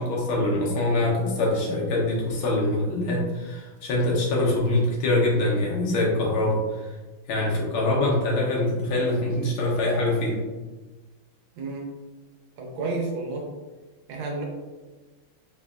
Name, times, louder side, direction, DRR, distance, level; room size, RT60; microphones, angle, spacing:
voice 1, 0.0-6.9 7.3-10.4, left 1 dB, 85° left, -3 dB, 1.6 m, -24 dB
voice 2, 11.6-11.9 12.6-13.5 14.1-14.4, right 3 dB, 80° right, -1 dB, 1.5 m, -31 dB
3.6 x 3.3 x 2.3 m, 1.2 s
omnidirectional pair, 2.2 m